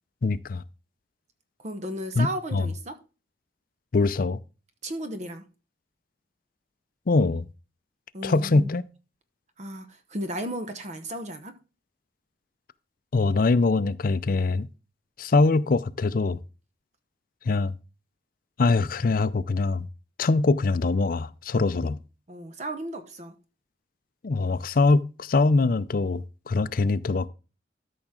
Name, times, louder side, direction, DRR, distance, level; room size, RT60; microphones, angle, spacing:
voice 1, 0.2-0.6 2.2-2.7 3.9-4.4 7.1-7.5 8.2-8.8 13.1-14.7 15.2-16.4 17.5-17.7 18.6-19.9 20.2-22.0 24.2-27.3, left 3 dB, 50° left, 0.5 m, -23 dB
voice 2, 1.6-3.0 4.8-5.4 8.1-8.7 9.6-11.5 22.3-23.3, right 1 dB, 40° right, 0.9 m, -34 dB
13.0 x 5.9 x 3.7 m
head